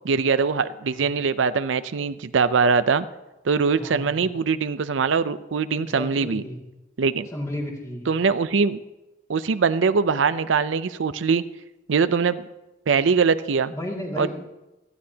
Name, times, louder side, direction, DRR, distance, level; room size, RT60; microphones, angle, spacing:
voice 1, 0.0-3.1 3.4-6.4 7.0-7.3 8.1-8.8 9.3-11.4 11.9-12.4 12.9-13.7 14.2-14.3, right 5 dB, 85° right, 13 dB, 0.5 m, -22 dB
voice 2, 3.8-4.2 5.7-6.6 7.3-8.1 13.6-14.5, left 1 dB, 15° left, -2 dB, 2.2 m, -33 dB
27.0 x 9.8 x 2.8 m, 1.0 s
head